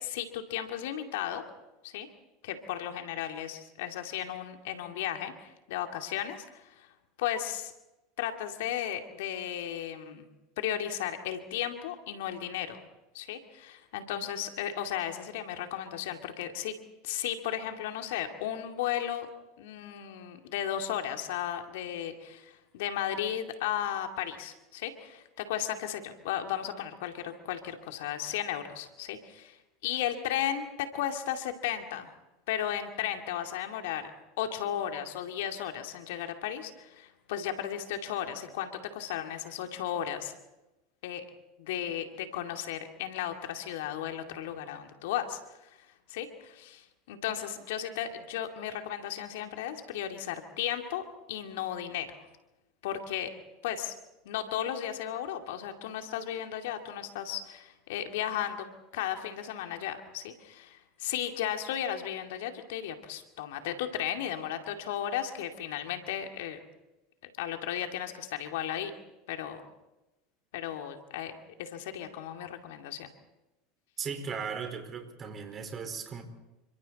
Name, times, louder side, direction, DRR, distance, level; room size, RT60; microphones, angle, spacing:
voice 1, 0.0-1.4 1.8-2.1 2.4-6.9 7.2-7.7 8.2-10.2 10.6-12.8 13.1-16.7 17.0-19.3 19.6-32.1 32.5-34.1 34.4-40.4 41.0-41.2 41.6-52.3 52.8-53.3 53.6-53.9 54.2-58.7 58.9-66.6 67.4-68.9 69.3-69.6 70.5-73.1, left 10 dB, 70° left, 5 dB, 2.4 m, -35 dB
voice 2, 74.0-76.2, right 6 dB, 35° right, 5 dB, 4.6 m, -37 dB
30.0 x 25.5 x 4.2 m, 1.0 s
hypercardioid pair, 85°, 0 cm